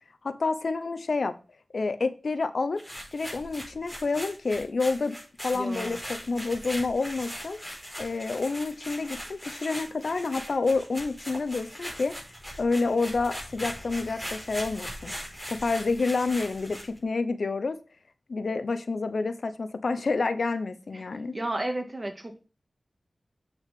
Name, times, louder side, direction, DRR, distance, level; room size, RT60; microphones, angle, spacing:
voice 1, 0.2-1.3 1.7-2.8 3.1-5.2 5.4-7.6 8.0-12.1 12.6-15.1 15.5-17.8 18.3-21.3, left 3 dB, 80° left, 10 dB, 0.7 m, -28 dB
sound 1, 2.8-17.0, equal, 5° right, 4.9 m, -40 dB
voice 2, 5.5-6.0 20.9-21.0 21.3-22.4, right 1 dB, 35° right, 5 dB, 2.0 m, -33 dB
8.4 x 6.0 x 3.6 m, 0.33 s
wide cardioid pair, 60°, 0 cm